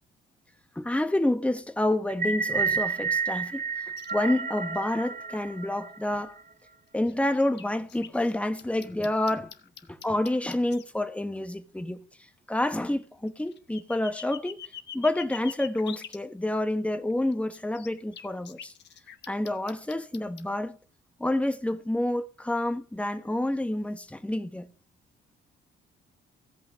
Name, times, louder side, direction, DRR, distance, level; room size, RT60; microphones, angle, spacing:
voice 1, 0.7-3.6 4.1-6.3 6.9-9.5 10.0-12.0 12.5-14.6 14.9-18.7 19.3-20.8 21.2-24.7, left 1 dB, 5° left, 1.3 m, -28 dB
sound 1, 2.1-6.4, right 5 dB, 50° right, 2.6 m, -30 dB
sound 2, 2.8-4.1 6.3-6.4 7.1-10.8 13.3-16.2 17.1-20.5, left 9 dB, 60° left, 1.3 m, -45 dB
16.5 x 5.8 x 8.4 m
cardioid pair, 90°, 20 cm